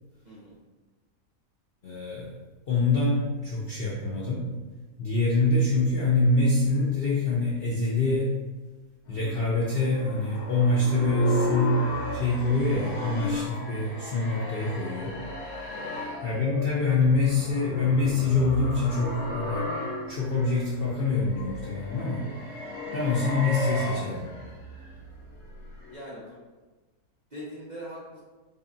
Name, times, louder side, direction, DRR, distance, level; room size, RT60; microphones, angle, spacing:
voice 1, 0.2-0.6 15.7-15.9 25.9-26.4 27.3-28.2, equal, 45° right, -8 dB, 0.6 m, -41 dB
voice 2, 1.8-2.3 2.7-4.6 5.0-8.4 9.1-15.2 16.2-19.7 20.1-22.3 22.9-24.3, left 2 dB, 60° left, -6 dB, 0.6 m, -25 dB
sound 1, 9.1-26.0, left 2 dB, 85° left, 1.4 m, -35 dB
5.2 x 2.3 x 2.6 m, 1.3 s
omnidirectional pair, 1.6 m